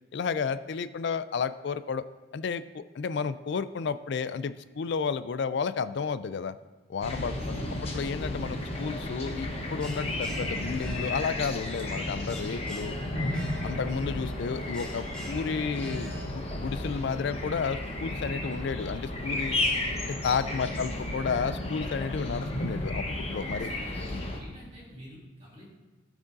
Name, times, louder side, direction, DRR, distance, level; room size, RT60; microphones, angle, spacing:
voice 1, 0.1-2.0 2.3-6.5 6.9-12.9 13.6-19.6 20.0-23.7, left 5 dB, 55° left, 14 dB, 0.3 m, -32 dB
sound 1, 7.0-24.4, left 1 dB, 30° left, 1.0 m, -33 dB
voice 2, 7.2-7.8 20.4-21.0 23.4-25.7, equal, 35° right, -5 dB, 2.9 m, -48 dB
Bell, 8.8-16.3, equal, 5° left, 0.8 m, -47 dB
16.0 x 6.2 x 2.6 m, 1.2 s
head